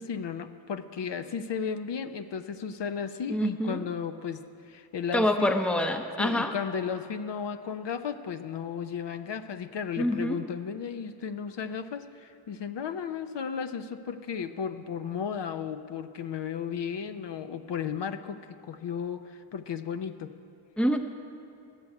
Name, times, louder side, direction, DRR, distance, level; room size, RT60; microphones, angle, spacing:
voice 1, 0.0-5.5 6.2-20.3, left 7 dB, 60° left, 9 dB, 0.6 m, -34 dB
voice 2, 3.3-3.8 5.1-6.5 10.0-10.4 20.8-21.0, left 1 dB, ahead, 6 dB, 0.7 m, -26 dB
13.0 x 7.0 x 9.7 m, 2.5 s
wide cardioid pair, 110°, 48 cm